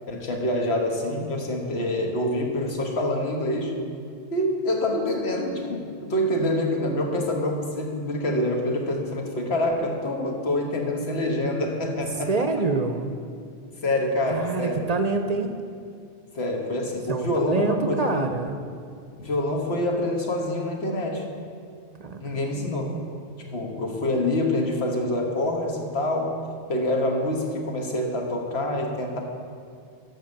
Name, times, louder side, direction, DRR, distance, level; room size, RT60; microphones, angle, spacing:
voice 1, 0.1-3.7 4.3-12.5 13.8-14.8 16.3-18.3 19.2-21.2 22.2-23.0 23.4-26.4 26.7-29.2, left 1 dB, 85° left, 1 dB, 1.6 m, -26 dB
voice 2, 12.3-13.1 14.3-15.5 17.1-18.6 22.0-22.7, right 3 dB, 50° right, 7 dB, 0.6 m, -26 dB
13.5 x 5.1 x 6.5 m, 2.3 s
omnidirectional pair, 1.0 m